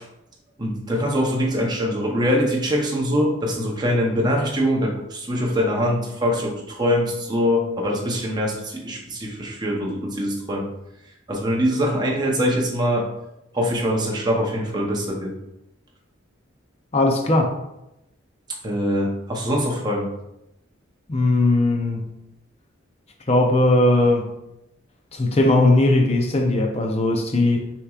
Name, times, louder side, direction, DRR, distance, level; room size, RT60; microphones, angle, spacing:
voice 1, 0.6-10.7 11.3-13.1 13.5-15.3 18.6-20.1, equal, 20° right, -1 dB, 0.8 m, -23 dB
voice 2, 16.9-17.5 21.1-22.1 23.3-24.3 25.1-27.7, left 2 dB, 30° left, 3 dB, 0.6 m, -19 dB
6.6 x 3.1 x 2.4 m, 0.87 s
head